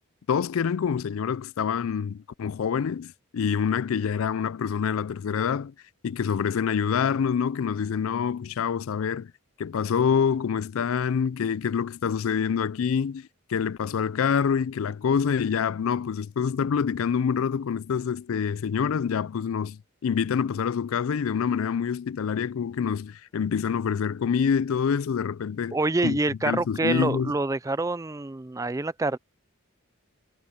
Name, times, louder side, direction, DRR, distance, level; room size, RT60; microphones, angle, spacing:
voice 1, 0.3-5.7 6.0-9.3 9.6-25.8 26.0-26.2 26.4-27.3, left 7 dB, 70° left, 0.4 m, -26 dB
voice 2, 25.7-29.2, right 2 dB, 15° right, 0.4 m, -26 dB
head